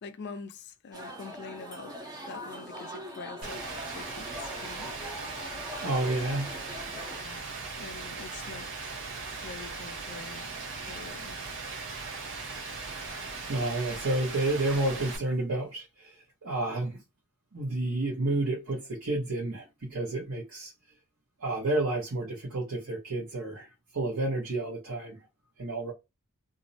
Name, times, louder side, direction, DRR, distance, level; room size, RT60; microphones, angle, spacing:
voice 1, 0.0-2.0 2.3-3.6 3.9-5.0 7.1-7.4 7.8-9.0 9.4-10.6 10.9-11.4, left 5 dB, 55° left, 0.4 m, -45 dB
sound 1, 0.9-7.2, equal, 20° right, 0.6 m, -42 dB
Rain, 3.4-15.2, right 4 dB, 60° right, 0.8 m, -39 dB
voice 2, 5.8-6.5 13.5-17.0 17.5-20.7 21.4-25.2 25.6-25.9, right 2 dB, 90° right, 0.9 m, -30 dB
2.5 x 2.0 x 2.6 m
head